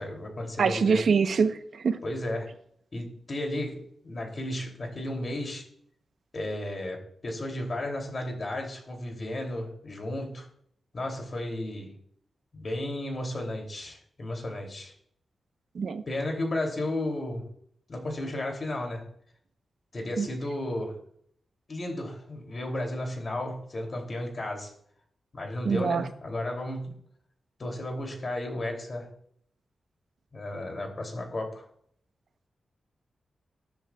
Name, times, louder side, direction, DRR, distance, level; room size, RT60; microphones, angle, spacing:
voice 1, 0.0-1.1 2.0-2.5 2.9-5.6 6.3-10.5 10.9-11.9 12.5-14.9 16.1-17.4 17.9-19.1 19.9-21.0 21.7-24.7 25.3-26.9 27.6-29.1 30.3-31.7, left 1 dB, 40° left, 2 dB, 2.9 m, -33 dB
voice 2, 0.6-2.0 15.7-16.0 20.2-20.3 25.6-26.0, right 5 dB, 70° right, 9 dB, 0.9 m, -24 dB
21.0 x 10.5 x 2.4 m, 0.67 s
wide cardioid pair, 125°, 0 cm